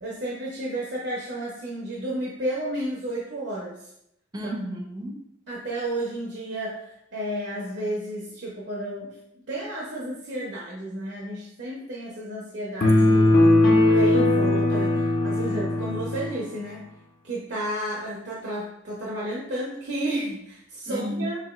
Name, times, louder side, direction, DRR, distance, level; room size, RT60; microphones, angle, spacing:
voice 1, 0.0-3.8 5.5-9.2 9.5-13.2 13.9-16.8 17.2-21.4, right 1 dB, 65° right, -4 dB, 0.7 m, -32 dB
voice 2, 4.3-5.2 13.0-13.8 20.9-21.3, equal, 20° right, 3 dB, 0.5 m, -33 dB
sound 1, 12.8-16.4, left 1 dB, 55° left, 0.6 m, -19 dB
5.7 x 2.7 x 2.3 m, 0.79 s
head